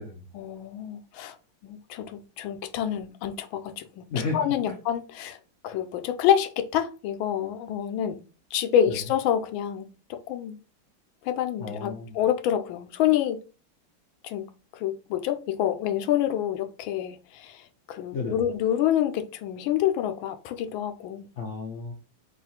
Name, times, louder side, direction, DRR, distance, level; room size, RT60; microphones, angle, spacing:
voice 1, 0.3-1.3 1.6-4.1 4.3-5.4 5.6-8.2 8.5-10.6 11.2-13.4 14.2-14.5 14.7-17.6 17.9-21.3, left 10 dB, 90° left, 9 dB, 1.4 m, -27 dB
voice 2, 11.6-12.2 18.1-18.4 21.4-21.9, left 4 dB, 70° left, 0 dB, 0.7 m, -32 dB
3.7 x 2.4 x 4.1 m, 0.35 s
omnidirectional pair, 2.1 m